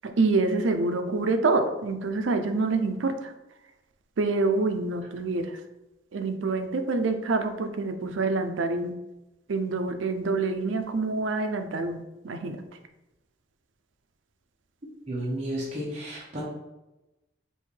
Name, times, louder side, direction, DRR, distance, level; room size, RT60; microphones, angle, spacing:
voice 1, 0.2-3.3 4.2-5.5 6.1-8.9 9.5-12.6, right 3 dB, 85° right, 7 dB, 0.5 m, -26 dB
voice 2, 15.1-16.4, right 1 dB, 35° right, -7 dB, 1.0 m, -32 dB
5.5 x 2.6 x 3.2 m, 0.99 s
head